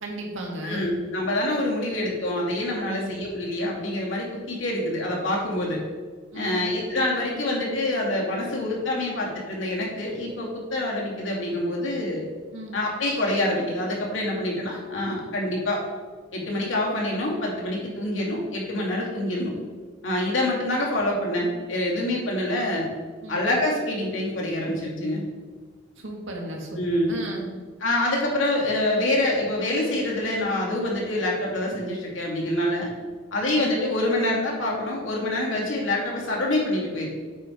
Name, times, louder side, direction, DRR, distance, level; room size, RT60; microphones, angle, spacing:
voice 1, 0.0-0.9 2.9-3.2 6.3-6.7 12.5-12.8 23.2-23.4 26.0-27.5 33.4-33.6, right 1 dB, 85° right, 0 dB, 1.9 m, -35 dB
voice 2, 0.6-5.8 6.3-12.2 12.7-15.8 16.3-19.5 20.0-22.9 23.3-25.2 26.8-27.1 27.8-32.9 33.3-37.1, left 1 dB, 80° left, -3 dB, 2.6 m, -26 dB
8.3 x 4.6 x 5.2 m, 1.5 s
head